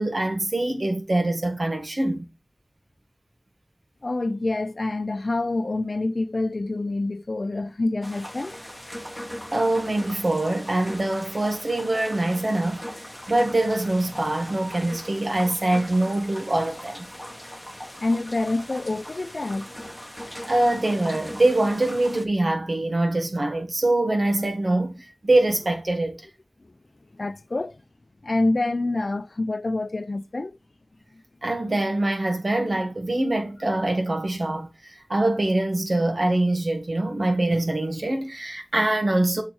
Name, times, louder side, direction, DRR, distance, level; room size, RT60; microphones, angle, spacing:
voice 1, 0.0-2.2 9.5-12.8 13.3-17.1 20.5-26.3 31.4-39.4, right 2 dB, 65° right, 1.7 m, -24 dB
voice 2, 4.0-8.6 18.0-19.7 27.1-27.8 28.2-30.6, left 2 dB, 75° left, 0.5 m, -26 dB
sound 1, 8.0-22.3, equal, 5° left, 1.4 m, -40 dB
6.7 x 4.3 x 4.6 m
wide cardioid pair, 50°, 0 cm